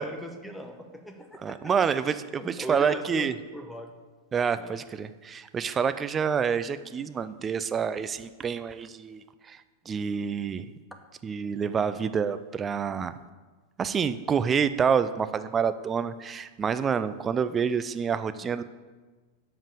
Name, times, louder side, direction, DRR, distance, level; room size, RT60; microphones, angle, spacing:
voice 1, 0.0-1.7 2.4-3.9 4.6-4.7, equal, ahead, 4 dB, 0.9 m, -40 dB
voice 2, 1.4-3.3 4.3-9.6 9.9-10.7 11.2-13.1 13.8-18.6, right 6 dB, 20° right, 12 dB, 0.4 m, -28 dB
7.3 x 5.2 x 6.8 m, 1.3 s
figure-of-eight pair, 90°, 0 cm